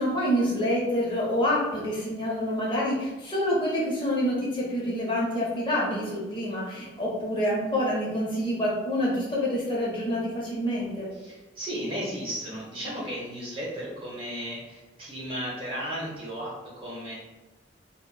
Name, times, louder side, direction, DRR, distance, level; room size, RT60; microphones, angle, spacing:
voice 1, 0.0-11.1, equal, 25° left, -5 dB, 0.6 m, -27 dB
voice 2, 11.2-17.1, equal, 30° right, -5 dB, 0.9 m, -35 dB
4.0 x 2.0 x 2.2 m, 1.2 s
head